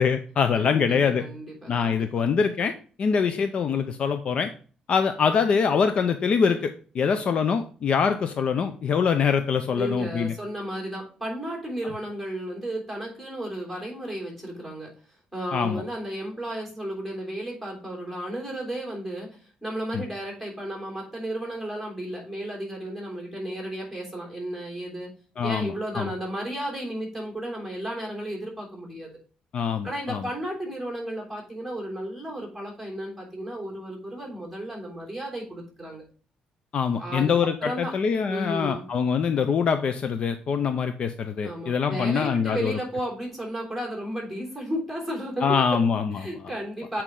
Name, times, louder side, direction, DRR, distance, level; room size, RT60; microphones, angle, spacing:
voice 1, 0.0-1.2 1.7-4.5 4.9-10.3 15.5-15.8 19.9-20.0 25.4-26.1 29.5-30.3 36.7-42.8 45.4-46.2, left 6 dB, 45° left, 9 dB, 0.5 m, -24 dB
voice 2, 0.6-2.0 9.7-14.9 15.3-25.1 25.4-29.1 29.8-36.0 37.0-37.3 37.6-38.0 38.3-38.8 41.4-45.8 46.2-47.0, right 1 dB, ahead, -2 dB, 3.2 m, -33 dB
8.3 x 4.4 x 3.7 m, 0.40 s
cardioid pair, 140°, 3 cm